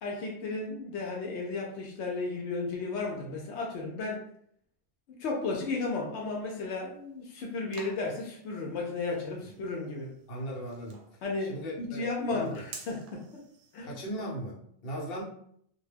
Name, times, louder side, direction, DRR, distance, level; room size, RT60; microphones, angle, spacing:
voice 1, 0.0-4.2 5.1-10.1 11.2-13.4 13.7-13.9, left 3 dB, 85° left, 0 dB, 0.9 m, -34 dB
sound 1, 6.6-13.8, right 4 dB, 80° right, 0.9 m, -52 dB
voice 2, 10.3-11.0 11.4-12.1 12.3-12.6 13.8-15.2, equal, 65° left, -4 dB, 1.0 m, -38 dB
2.2 x 2.2 x 3.2 m, 0.67 s
omnidirectional pair, 1.1 m